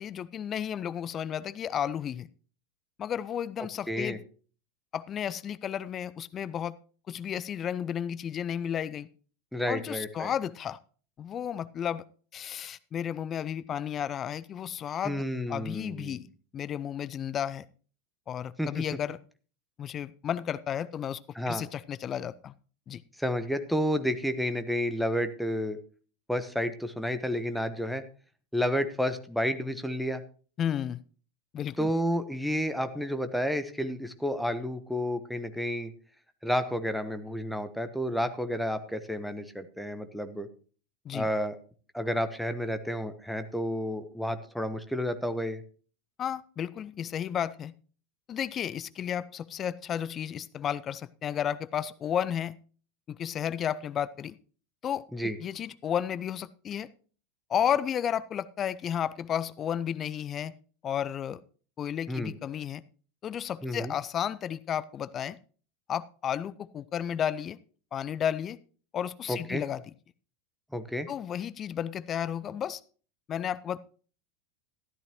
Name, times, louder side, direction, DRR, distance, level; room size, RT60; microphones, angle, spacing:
voice 1, 0.0-2.3 3.0-4.2 4.9-6.7 7.1-9.1 9.7-10.8 11.2-12.0 12.3-15.2 15.5-16.3 16.5-17.7 18.3-19.2 19.8-21.2 21.5-22.5 22.9-23.0 30.6-31.0 31.5-31.9 41.1-41.3 46.2-47.7 48.3-52.5 53.1-54.4 54.8-56.9 57.5-60.5 60.8-61.4 61.8-62.8 63.2-65.4 65.9-67.6 67.9-68.6 68.9-69.8 71.1-72.8 73.3-73.8, left 9 dB, 30° left, 0.5 m, -32 dB
voice 2, 3.9-4.2 9.5-10.3 15.0-16.2 18.6-18.8 21.3-21.7 23.2-25.8 26.3-28.0 28.5-30.2 31.8-35.9 36.4-40.5 41.1-41.6 41.9-45.6 55.1-55.4 62.1-62.4 63.6-63.9 69.3-69.6 70.7-71.1, equal, ahead, 1.1 m, -31 dB
13.5 x 12.0 x 3.0 m
figure-of-eight pair, 85°, 0 cm